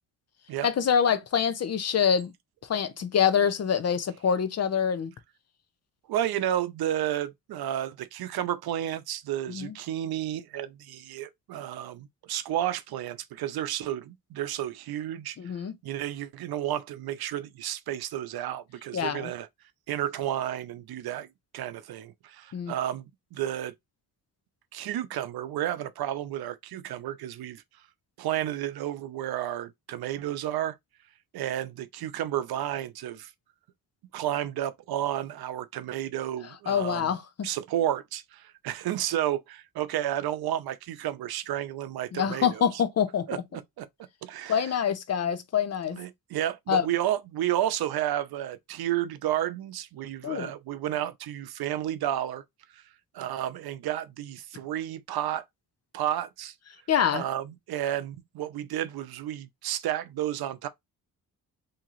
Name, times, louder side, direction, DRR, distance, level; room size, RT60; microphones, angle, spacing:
voice 1, 0.6-2.3 2.7-5.1 9.5-9.7 15.4-15.7 18.9-19.3 22.5-22.7 36.7-37.5 42.1-43.4 44.5-46.0 46.7-46.9 50.2-50.5 56.9-57.2, left 7 dB, 45° left, 0.6 m, -25 dB
voice 2, 6.1-19.5 19.9-21.3 21.5-23.0 23.3-23.7 24.7-27.6 28.2-30.8 31.3-33.3 34.1-37.1 37.4-42.8 43.3-43.4 43.8-43.9 44.2-44.6 45.9-52.4 52.7-52.8 53.1-55.4 55.9-56.5 57.1-60.7, right 12 dB, 80° right, 0.6 m, -31 dB
3.6 x 2.9 x 3.0 m
cardioid pair, 125°, 37 cm